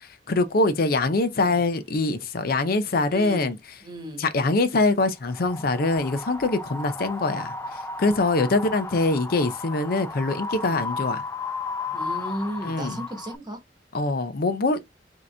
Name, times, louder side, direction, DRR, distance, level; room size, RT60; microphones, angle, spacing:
voice 1, 0.3-3.6 4.2-11.2 12.6-13.0 13.9-14.8, left 2 dB, 60° left, 0.6 m, -23 dB
voice 2, 3.1-3.5 3.8-4.2 10.6-10.8 11.9-13.6, right 1 dB, 25° right, 1.4 m, -35 dB
Wind, 5.2-13.4, left 3 dB, 15° left, 0.4 m, -34 dB
5.1 x 2.9 x 3.3 m
head